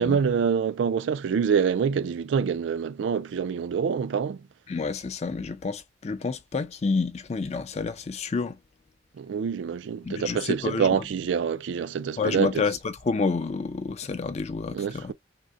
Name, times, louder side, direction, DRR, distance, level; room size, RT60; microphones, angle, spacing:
voice 1, 0.0-4.5 9.1-12.6 14.7-15.1, right 6 dB, 75° right, 0.3 m, -26 dB
voice 2, 4.7-8.6 10.0-10.9 12.2-15.1, left 4 dB, 35° left, 0.4 m, -29 dB
3.6 x 2.1 x 2.5 m
head